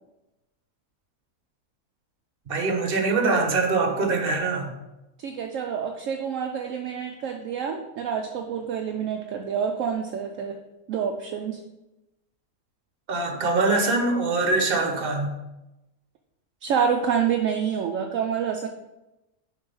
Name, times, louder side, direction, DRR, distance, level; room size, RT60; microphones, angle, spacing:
voice 1, 2.5-4.7 13.1-15.4, right 3 dB, 45° right, 3 dB, 1.1 m, -23 dB
voice 2, 5.2-10.6 10.9-11.6 16.6-18.7, right 7 dB, 70° right, 3 dB, 0.9 m, -27 dB
6.7 x 3.5 x 5.4 m, 0.96 s
omnidirectional pair, 1.5 m